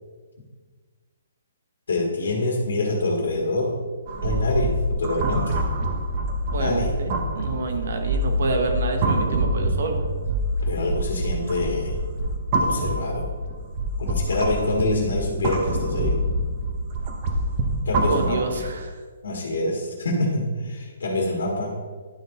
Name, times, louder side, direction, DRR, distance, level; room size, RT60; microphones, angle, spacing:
voice 1, 1.9-3.8 4.2-5.9 6.5-6.9 10.6-12.0 12.6-13.3 14.0-16.2 17.8-18.4 19.2-21.8, left 2 dB, 75° left, -2 dB, 1.6 m, -26 dB
sound 1, 4.1-18.8, right 1 dB, 25° right, 0.6 m, -26 dB
voice 2, 6.5-10.1 18.0-19.0, right 3 dB, 55° right, 4 dB, 1.0 m, -28 dB
11.0 x 3.8 x 4.0 m, 1.5 s
hypercardioid pair, 175°, 0 cm